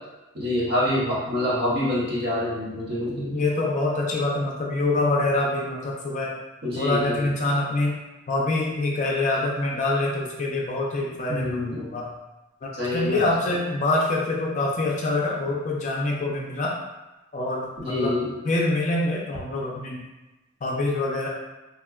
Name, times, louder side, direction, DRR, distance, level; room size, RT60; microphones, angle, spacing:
voice 1, 0.3-3.4 6.6-7.3 11.3-11.8 12.7-13.2 17.8-18.3, left 1 dB, 50° right, -7 dB, 0.9 m, -26 dB
voice 2, 3.3-6.4 6.8-8.0 8.3-12.1 12.6-16.7 17.3-18.2 18.4-20.1 20.6-21.3, left 2 dB, 35° left, -2 dB, 0.4 m, -25 dB
3.5 x 2.1 x 2.3 m, 1.0 s
head